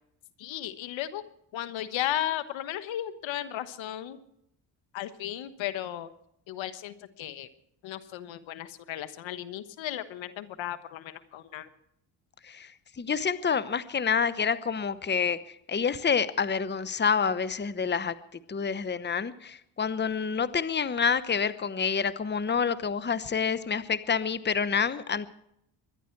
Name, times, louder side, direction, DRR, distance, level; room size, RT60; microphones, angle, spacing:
voice 1, 0.4-1.2 1.5-4.2 4.9-6.1 6.5-7.5 7.8-11.7, left 12 dB, 80° left, 12 dB, 1.4 m, -35 dB
voice 2, 13.0-15.4 15.7-18.1 18.5-25.3, left 6 dB, 25° left, 15 dB, 1.0 m, -28 dB
23.5 x 11.0 x 4.6 m, 0.76 s
cardioid pair, 75°, 46 cm